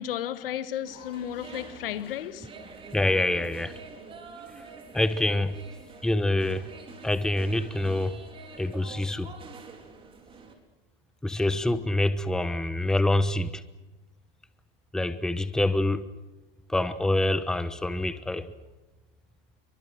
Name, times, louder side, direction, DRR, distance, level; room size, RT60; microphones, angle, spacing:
voice 1, 0.0-2.5, left 11 dB, 70° left, 1.4 m, -33 dB
sound 1, 0.8-10.5, right 4 dB, 20° right, 4.1 m, -46 dB
voice 2, 2.9-3.7 4.9-5.6 6.0-6.7 7.0-8.2 8.6-9.3 11.2-13.6 14.9-16.0 16.7-18.5, left 1 dB, ahead, 1.0 m, -26 dB
28.0 x 24.0 x 6.3 m
hypercardioid pair, 130°, 29 cm